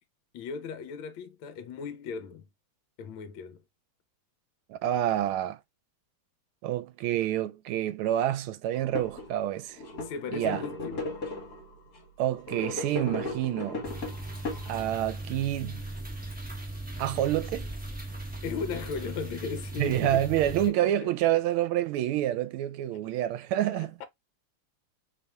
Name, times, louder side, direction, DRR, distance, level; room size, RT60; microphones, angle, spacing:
voice 1, 0.3-2.4 3.0-3.6 10.0-11.0 18.4-20.3 21.0-21.1 23.7-24.0, left 6 dB, 70° left, 1.3 m, -37 dB
voice 2, 4.7-5.6 6.6-9.8 10.3-10.6 12.2-13.9 14.7-15.9 17.0-17.7 19.8-23.9, right 12 dB, 80° right, 1.4 m, -28 dB
sound 1, 8.7-9.3 9.7-11.7 12.3-15.1, left 2 dB, 50° left, 1.7 m, -36 dB
sound 2, 13.8-20.7, right 2 dB, 10° right, 0.5 m, -38 dB
4.1 x 3.5 x 2.2 m
omnidirectional pair, 2.4 m